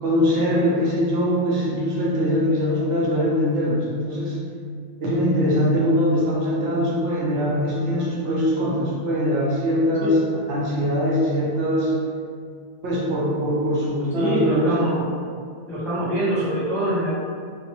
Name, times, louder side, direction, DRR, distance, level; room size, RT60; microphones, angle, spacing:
voice 1, 0.0-4.4 5.0-11.9 12.8-14.9, equal, 70° right, -4 dB, 0.9 m, -22 dB
voice 2, 14.1-15.1 15.7-17.1, right 1 dB, 5° left, -9 dB, 0.3 m, -24 dB
3.2 x 2.0 x 2.8 m, 2.2 s
omnidirectional pair, 1.2 m